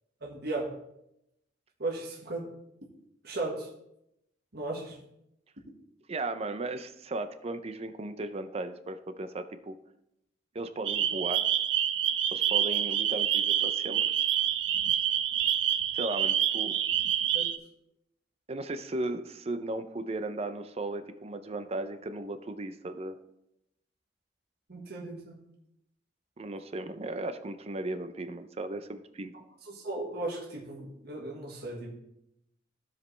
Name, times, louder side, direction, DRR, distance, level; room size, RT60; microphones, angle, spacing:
voice 1, 0.2-0.8 1.8-2.5 3.2-3.7 4.5-5.0 17.3-17.4 24.7-25.4 29.6-31.9, right 2 dB, 60° right, -2 dB, 1.5 m, -36 dB
voice 2, 6.1-9.7 10.5-11.4 12.3-14.1 15.9-16.8 18.5-23.2 26.4-29.3, right 2 dB, 35° right, 9 dB, 0.5 m, -36 dB
sound 1, 10.8-17.6, right 10 dB, 90° right, 0.6 m, -27 dB
15.5 x 5.2 x 3.3 m, 0.82 s
head